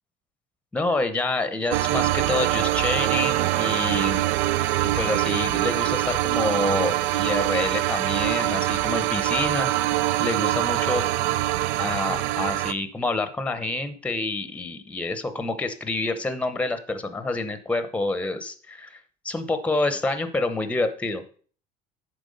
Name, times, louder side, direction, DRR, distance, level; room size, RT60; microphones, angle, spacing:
voice 1, 0.7-4.2 4.8-9.7 10.2-11.1 11.8-19.0 19.2-21.2, left 2 dB, 5° left, 10 dB, 0.7 m, -27 dB
sound 1, 1.7-12.7, right 16 dB, 85° right, 0.4 m, -24 dB
10.5 x 4.6 x 5.2 m, 0.43 s
cardioid pair, 145°, 19 cm